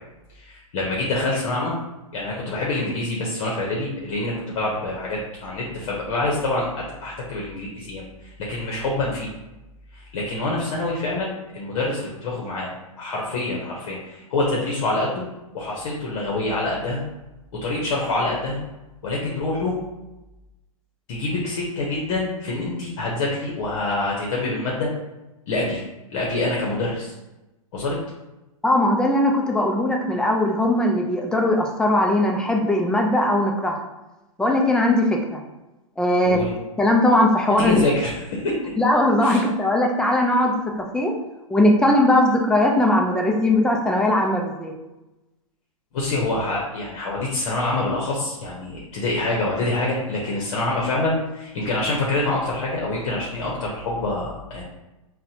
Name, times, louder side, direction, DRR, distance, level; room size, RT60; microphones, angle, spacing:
voice 1, 0.3-1.7 2.1-9.3 9.9-12.7 13.0-15.2 15.5-17.0 17.6-18.6 19.0-19.8 21.1-24.9 25.5-25.8 26.1-27.1 27.7-28.0 36.2-36.5 37.6-38.6 39.2-39.4 45.9-54.6, left 2 dB, 60° left, -3 dB, 0.8 m, -26 dB
voice 2, 28.6-33.8 34.4-35.4 36.0-36.4 36.8-37.8 38.8-41.1 41.5-44.7, left 1 dB, 5° left, 0 dB, 0.3 m, -19 dB
3.9 x 2.1 x 2.8 m, 1.0 s
hypercardioid pair, 120°, 18 cm